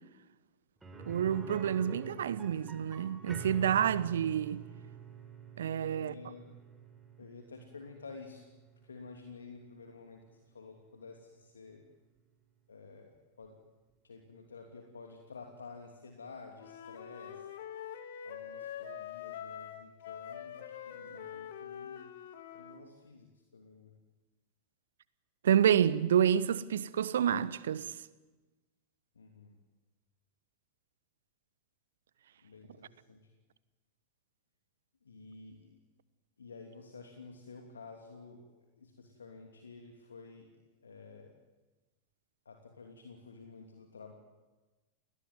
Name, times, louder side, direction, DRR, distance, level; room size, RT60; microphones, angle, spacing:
sound 1, 0.8-10.6 10.9-11.0 13.4-13.5, right 6 dB, 10° right, 5.3 m, -48 dB
voice 1, 1.1-4.6 5.6-6.1 25.4-28.0, right 9 dB, 65° right, 1.2 m, -28 dB
voice 2, 5.8-6.5 7.2-8.4 8.8-11.8 12.7-13.6 14.0-17.5 18.2-22.1 22.5-23.9 29.1-29.6 32.4-33.3 35.0-35.8 36.4-41.3 42.4-44.1, left 4 dB, 70° left, 2.9 m, -51 dB
Wind instrument woodwind instrument, 16.6-22.8, left 9 dB, 55° left, 2.6 m, -44 dB
29.5 x 20.0 x 9.4 m
figure-of-eight pair, 90°, 0 cm